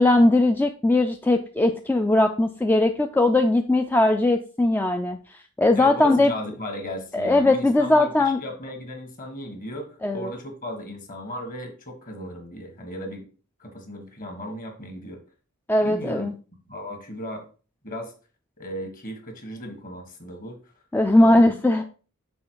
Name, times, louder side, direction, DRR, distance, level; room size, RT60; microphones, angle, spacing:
voice 1, 0.0-6.3 7.1-8.4 10.0-10.3 15.7-16.3 20.9-21.8, left 2 dB, 10° left, 5 dB, 0.3 m, -19 dB
voice 2, 5.7-13.3 13.6-15.2 15.8-16.3 16.7-17.4 17.8-18.1 18.6-20.6 21.2-21.5, equal, 40° left, 4 dB, 1.7 m, -36 dB
6.3 x 4.1 x 4.6 m, 0.36 s
head